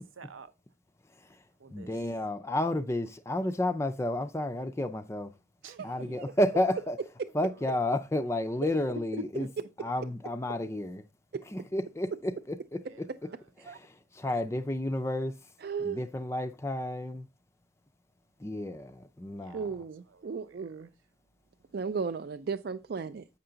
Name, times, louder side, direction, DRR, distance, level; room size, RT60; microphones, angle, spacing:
voice 1, 0.2-0.5 1.6-1.9 5.6-6.8 7.5-7.9 9.2-9.5 12.8-13.5 19.4-20.9, right 2 dB, 85° right, 0.7 m, -48 dB
voice 2, 1.7-5.3 5.8-7.0 7.3-9.5 9.8-11.0 11.5-12.3 14.2-15.4 15.8-17.3 18.4-19.6, left 1 dB, 15° left, 0.4 m, -31 dB
voice 3, 5.6-6.3 6.7-6.8 7.2-7.3 8.6-8.7 11.3-11.4 13.6-13.8 15.6-16.1 19.5-20.9 21.7-23.3, right 5 dB, 50° right, 0.3 m, -35 dB
8.7 x 5.7 x 3.8 m
head